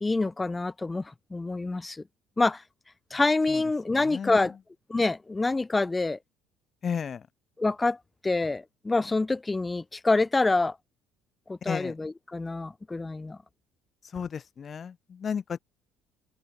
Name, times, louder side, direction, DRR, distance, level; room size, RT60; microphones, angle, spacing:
voice 1, 0.0-2.0 2.4-2.6 3.1-4.5 4.9-6.2 7.6-8.0 8.2-10.8 11.5-13.4, left 3 dB, 20° left, 2.2 m, -26 dB
voice 2, 3.9-4.4 6.8-7.2 11.7-11.9 14.1-15.6, left 7 dB, 40° left, 7.8 m, -33 dB
supercardioid pair, 75°, 0 cm